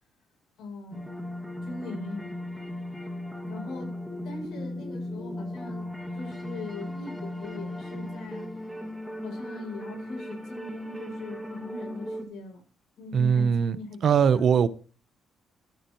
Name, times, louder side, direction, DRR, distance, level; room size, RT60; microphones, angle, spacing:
voice 1, 0.6-1.1 1.6-2.3 3.5-3.9 4.2-8.5 9.2-12.6 13.0-14.5, left 2 dB, 75° left, 6.2 m, -41 dB
sound 1, 0.9-12.2, left 1 dB, ahead, 2.1 m, -37 dB
voice 2, 13.1-13.8 14.0-14.7, right 7 dB, 55° right, 0.8 m, -21 dB
13.5 x 9.1 x 3.0 m
cardioid pair, 110°, 0 cm